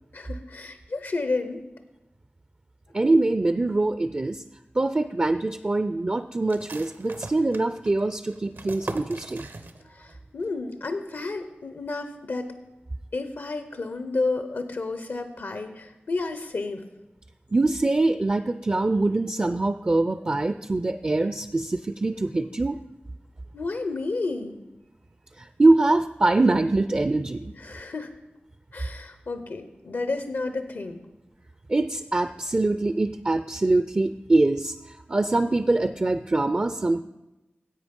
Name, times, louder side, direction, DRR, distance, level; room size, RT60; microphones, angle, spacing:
voice 1, 0.1-1.6 10.0-12.4 13.1-16.8 23.5-24.5 27.5-28.1 28.7-31.0, left 3 dB, 80° left, 9 dB, 0.8 m, -31 dB
voice 2, 2.9-4.4 4.8-9.4 17.5-22.8 25.6-27.5 31.7-34.7 35.1-37.0, right 2 dB, 35° right, 12 dB, 0.4 m, -23 dB
sound 1, 6.5-10.1 10.4-10.5 10.9-11.4, right 3 dB, 65° right, 0.7 m, -40 dB
10.5 x 7.9 x 5.3 m, 0.99 s
cardioid pair, 45°, 4 cm